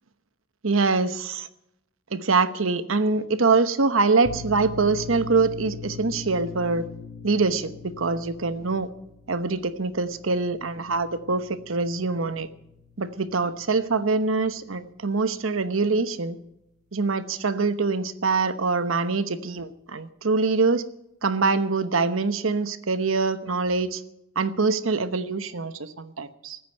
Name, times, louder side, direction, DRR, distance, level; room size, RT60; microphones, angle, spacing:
voice 1, 0.6-1.5 2.1-6.8 7.2-8.9 9.3-12.5 13.0-16.4 16.9-20.8 21.2-24.0 24.3-26.6, right 4 dB, 85° right, 12 dB, 1.0 m, -24 dB
sound 1, 4.2-15.5, left 5 dB, 35° right, 2.4 m, -42 dB
14.5 x 9.1 x 9.2 m, 0.84 s
head